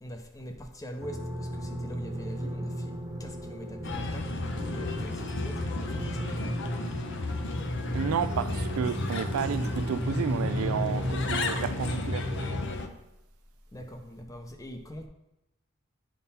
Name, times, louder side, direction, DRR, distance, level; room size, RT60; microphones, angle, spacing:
voice 1, 0.0-2.9 3.2-6.6 13.7-15.1, equal, 15° left, 0.7 m, -43 dB
sound 1, 1.0-12.7, equal, 20° right, 1.0 m, -35 dB
Bird, 3.8-12.9, left 3 dB, 55° left, 0.7 m, -34 dB
voice 2, 7.9-12.2, right 7 dB, 80° right, 0.3 m, -31 dB
10.5 x 3.8 x 4.2 m
head